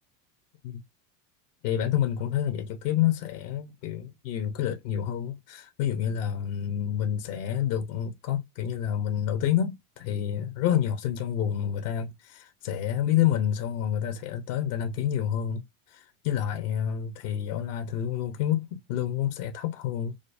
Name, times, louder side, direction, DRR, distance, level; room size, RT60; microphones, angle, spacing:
voice 1, 1.6-15.6 15.9-20.1, left 10 dB, 70° left, 0.9 m, -28 dB
5.1 x 2.0 x 2.5 m
supercardioid pair, 110°, 47 cm